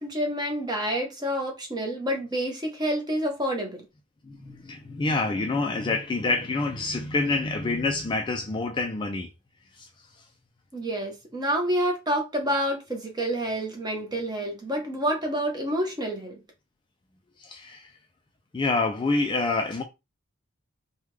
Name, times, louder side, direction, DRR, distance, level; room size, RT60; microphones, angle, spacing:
voice 1, 0.0-3.9 10.7-16.4, right 1 dB, 20° right, 0.9 m, -28 dB
voice 2, 4.3-9.3 9.8-9.9 17.4-17.9 18.5-19.8, left 3 dB, 25° left, 0.3 m, -27 dB
3.4 x 2.2 x 3.1 m
head